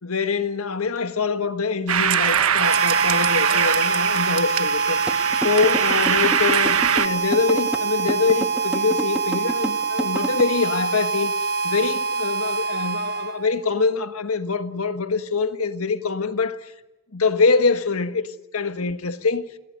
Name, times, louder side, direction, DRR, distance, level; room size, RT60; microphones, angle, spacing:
voice 1, 0.0-5.0 5.4-11.3 11.6-16.7 17.1-19.5, left 4 dB, 75° left, 1.5 m, -24 dB
sound 1, 1.9-7.1, right 8 dB, 75° right, 1.2 m, -22 dB
Harmonica, 2.6-13.6, right 4 dB, 45° right, 1.3 m, -25 dB
sound 2, 5.1-10.4, equal, 5° right, 1.3 m, -28 dB
29.0 x 18.5 x 9.6 m
head